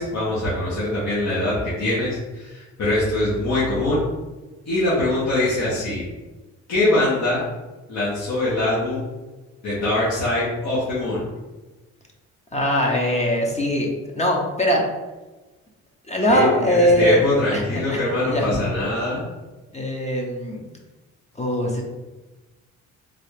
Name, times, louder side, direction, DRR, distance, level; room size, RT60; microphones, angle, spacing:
voice 1, 0.0-4.0 4.7-6.0 6.7-7.4 7.9-9.0 9.6-11.2 16.3-19.2, left 1 dB, 65° left, -9 dB, 1.3 m, -23 dB
voice 2, 12.5-14.8 16.1-17.2 17.5-18.0 18.2-18.6 19.7-20.7 21.4-21.8, equal, 20° left, 0 dB, 0.7 m, -21 dB
3.8 x 2.4 x 3.3 m, 1.2 s
cardioid pair, 90°, 30 cm